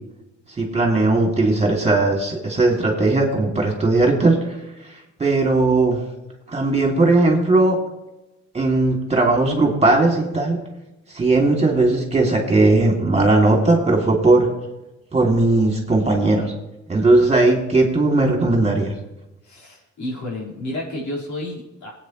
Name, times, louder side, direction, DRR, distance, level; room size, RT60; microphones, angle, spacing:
voice 1, 0.6-4.6 5.2-6.0 6.5-7.8 8.5-10.6 11.1-14.5 15.1-16.5 16.9-18.9, right 2 dB, 20° right, 0 dB, 2.9 m, -18 dB
voice 2, 19.4-21.9, left 1 dB, 70° left, -4 dB, 4.8 m, -31 dB
19.0 x 8.9 x 3.2 m, 0.97 s
cardioid pair, 90°, 30 cm